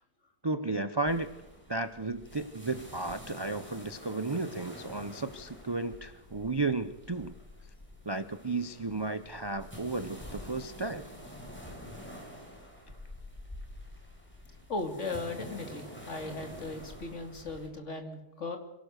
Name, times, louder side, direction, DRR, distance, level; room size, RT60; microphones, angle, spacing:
voice 1, 0.4-1.3 1.7-7.3 8.0-11.0, right 3 dB, 30° right, 11 dB, 0.4 m, -33 dB
sound 1, 1.0-17.7, equal, 5° left, 5.1 m, -47 dB
voice 2, 14.7-18.6, left 3 dB, 50° left, 5 dB, 2.9 m, -37 dB
26.5 x 17.5 x 6.6 m, 0.93 s
omnidirectional pair, 1.7 m